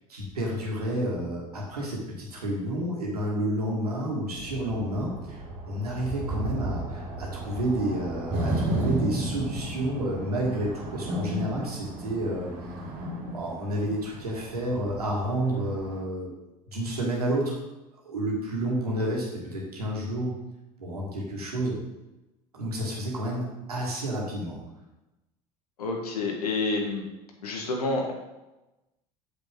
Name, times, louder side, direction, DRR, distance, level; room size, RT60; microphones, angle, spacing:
voice 1, 0.1-12.5 13.3-16.3 16.7-17.6 18.0-20.3 20.8-21.8 22.5-24.6, right 1 dB, 85° right, -3 dB, 2.3 m, -30 dB
sound 1, 4.3-16.0, right 1 dB, 50° right, 2.5 m, -34 dB
voice 2, 25.8-27.0 27.4-28.1, left 3 dB, 85° left, 1 dB, 1.7 m, -28 dB
8.6 x 7.4 x 3.8 m, 1.0 s
hypercardioid pair, 70°, 19 cm